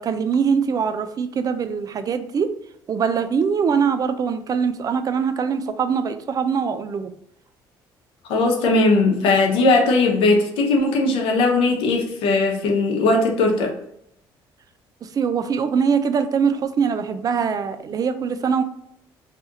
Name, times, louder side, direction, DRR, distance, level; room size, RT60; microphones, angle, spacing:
voice 1, 0.0-2.5 2.9-7.1 15.1-18.6, right 6 dB, 40° right, 0.4 m, -22 dB
voice 2, 8.3-13.7, left 3 dB, 80° left, 0.8 m, -18 dB
2.8 x 2.5 x 3.7 m
supercardioid pair, 85°, 9 cm